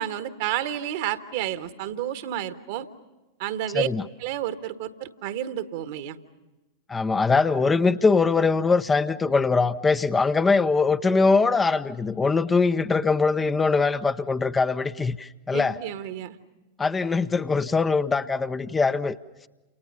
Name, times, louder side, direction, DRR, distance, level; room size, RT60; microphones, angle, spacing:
voice 1, 0.0-2.9 3.4-3.9 4.2-6.2 15.5-16.4, right 12 dB, 50° right, 10 dB, 1.5 m, -30 dB
voice 2, 6.9-15.8 16.8-19.2, left 4 dB, 15° left, 10 dB, 0.8 m, -22 dB
29.0 x 29.0 x 5.6 m, 1.1 s
figure-of-eight pair, 90°, 0 cm